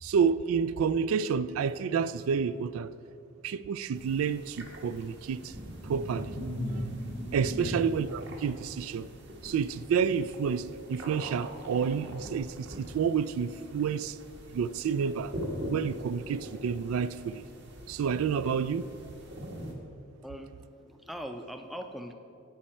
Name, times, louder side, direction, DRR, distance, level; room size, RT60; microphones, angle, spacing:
voice 1, 0.0-2.9 3.4-5.5 5.8-6.3 6.7-6.8 7.3-9.1 9.4-14.2 14.5-15.3 15.7-17.4 17.9-18.9, right 6 dB, 85° right, 0.3 m, -29 dB
sound 1, 3.9-19.7, equal, 55° right, 1.4 m, -41 dB
voice 2, 7.6-7.9 20.2-20.5 20.8-22.1, equal, ahead, 0.4 m, -41 dB
16.0 x 5.4 x 4.3 m
head